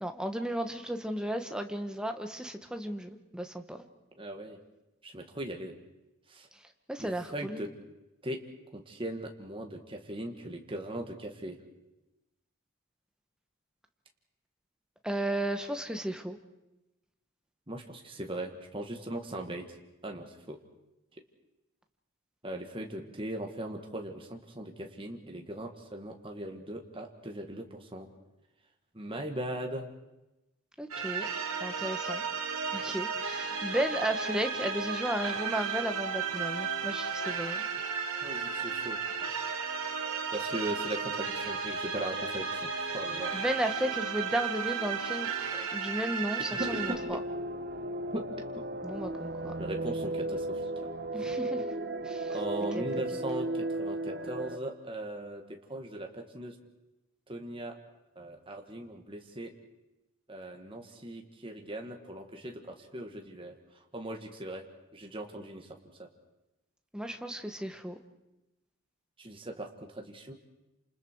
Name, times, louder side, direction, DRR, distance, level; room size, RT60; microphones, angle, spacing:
voice 1, 0.0-3.8 6.9-7.6 15.0-16.4 30.8-31.3 31.6-32.2 32.7-37.6 43.3-47.2 48.8-49.5 51.1-51.6 52.0-52.4 52.7-52.8 66.9-68.0, right 1 dB, 5° right, 6 dB, 1.2 m, -34 dB
voice 2, 4.2-4.6 5.0-5.8 6.3-6.5 7.0-7.7 8.2-8.4 8.7-11.6 17.7-19.7 20.0-20.6 22.4-28.1 28.9-29.9 38.2-39.0 40.3-43.3 46.6-47.0 48.1-48.3 49.6-50.9 52.3-56.6 57.3-57.7 58.2-59.5 60.3-63.6 63.9-64.6 64.9-66.1 69.2-70.3, right 1 dB, 25° right, 3 dB, 1.9 m, -39 dB
sound 1, 30.9-47.0, right 5 dB, 85° right, 2.7 m, -34 dB
sound 2, 46.6-54.6, right 1 dB, 50° right, 1.3 m, -35 dB
29.0 x 27.5 x 4.7 m, 0.97 s
head